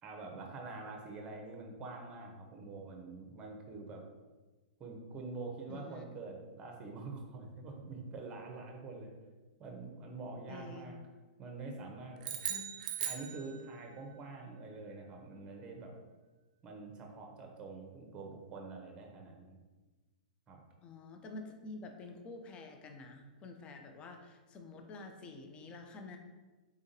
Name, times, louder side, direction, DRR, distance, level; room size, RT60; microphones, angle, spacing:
voice 1, 0.0-4.0 4.8-9.1 9.6-11.0 11.4-12.4 13.1-15.9 16.6-19.6 20.5-20.6, right 3 dB, 25° right, 2 dB, 0.8 m, -46 dB
voice 2, 5.7-6.0 10.5-10.9 12.5-12.6 20.8-26.2, left 3 dB, 25° left, 4 dB, 0.4 m, -48 dB
sound 1, 12.2-14.0, right 9 dB, 60° right, 0.4 m, -39 dB
3.6 x 3.6 x 2.8 m, 1.2 s
hypercardioid pair, 130°, 5 cm